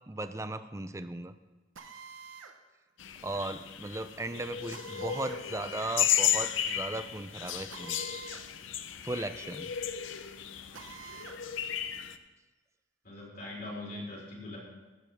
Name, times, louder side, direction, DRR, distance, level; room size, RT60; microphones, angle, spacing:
voice 1, 0.1-1.3 3.2-8.0 9.0-9.7, right 2 dB, 15° right, 11 dB, 0.5 m, -37 dB
Drill, 1.8-2.6 4.7-5.5 7.7-8.5 8.8-8.9 10.7-11.4, right 6 dB, 85° right, 1.0 m, -47 dB
sound 1, 3.0-12.2, left 10 dB, 75° left, 0.7 m, -34 dB
voice 2, 13.0-14.6, left 2 dB, 50° left, -4 dB, 4.3 m, -41 dB
15.0 x 5.4 x 6.4 m, 1.2 s
head